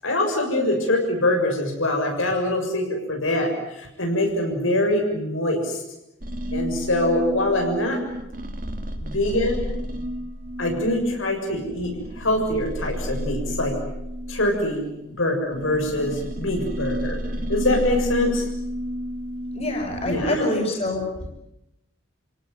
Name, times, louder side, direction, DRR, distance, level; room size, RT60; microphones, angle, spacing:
voice 1, 0.0-5.8 6.5-8.0 9.0-9.7 10.6-13.8 14.3-14.9 15.2-17.2 17.5-18.5 20.0-20.4, left 1 dB, 85° left, 2 dB, 7.1 m, -24 dB
sound 1, 6.2-15.0 15.5-20.2, equal, 40° right, 2.6 m, -31 dB
voice 2, 19.5-21.3, left 1 dB, 30° left, 1 dB, 5.9 m, -26 dB
29.0 x 17.5 x 9.5 m, 0.85 s
head